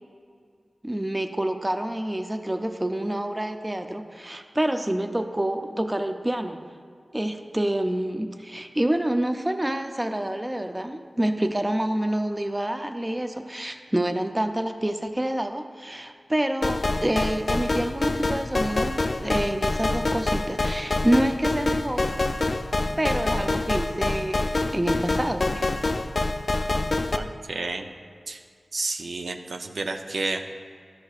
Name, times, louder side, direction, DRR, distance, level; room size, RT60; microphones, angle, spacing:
voice 1, 0.8-6.6 7.1-19.0 19.2-22.1 23.0-25.7, right 1 dB, 20° right, 7 dB, 0.4 m, -27 dB
sound 1, 16.6-27.2, left 2 dB, 55° left, 0.3 m, -26 dB
voice 2, 27.1-27.9 28.3-28.4 28.7-30.4, right 3 dB, 85° right, 4 dB, 0.5 m, -31 dB
12.0 x 6.4 x 2.4 m, 2.3 s
wide cardioid pair, 75°, 0 cm